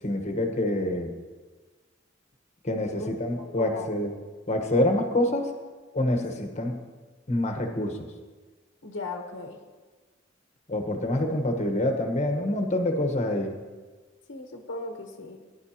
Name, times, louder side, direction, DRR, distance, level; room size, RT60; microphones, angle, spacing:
voice 1, 0.0-1.1 2.6-4.1 4.5-5.5 5.9-6.8 7.3-8.1 10.7-13.5, left 1 dB, 35° left, 4 dB, 1.2 m, -26 dB
voice 2, 2.9-3.9 8.8-9.6 14.3-15.4, left 2 dB, 90° left, 3 dB, 1.1 m, -38 dB
19.0 x 10.5 x 2.9 m, 1.3 s
head